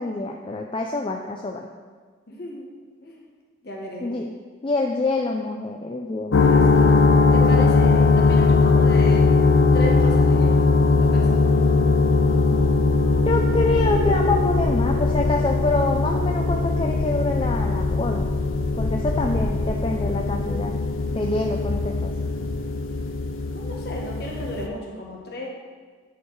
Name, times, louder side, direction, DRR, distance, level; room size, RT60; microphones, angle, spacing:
voice 1, 0.0-1.7 4.0-4.3 4.6-6.4 13.3-18.3 18.7-20.7 21.1-22.1, left 2 dB, 25° left, 2 dB, 0.3 m, -26 dB
voice 2, 2.3-2.7 3.0-3.2 3.6-4.2 6.4-6.9 7.3-9.2 9.7-11.5 21.1-21.5 23.5-25.5, left 1 dB, 55° left, -2 dB, 1.4 m, -34 dB
sound 1, 6.3-24.7, left 3 dB, 85° left, 0.6 m, -20 dB
9.0 x 4.6 x 4.7 m, 1.5 s
head